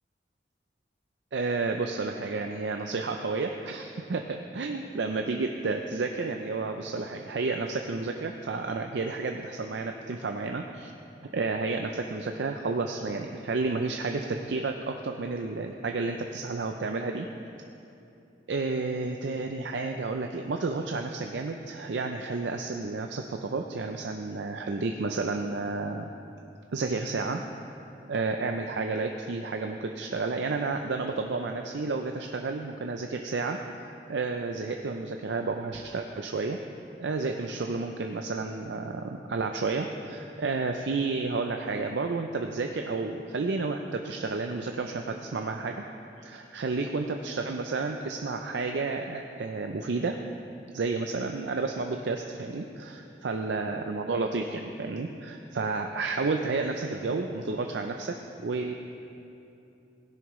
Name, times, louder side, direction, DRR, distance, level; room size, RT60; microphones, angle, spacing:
voice 1, 1.3-10.9 11.3-17.3 18.5-26.1 26.7-27.4 28.1-33.6 34.1-36.6 37.0-45.8 46.2-50.2 50.7-58.2 58.4-58.7, right 3 dB, 80° right, 4 dB, 0.5 m, -31 dB
16.5 x 10.5 x 3.1 m, 2.8 s
head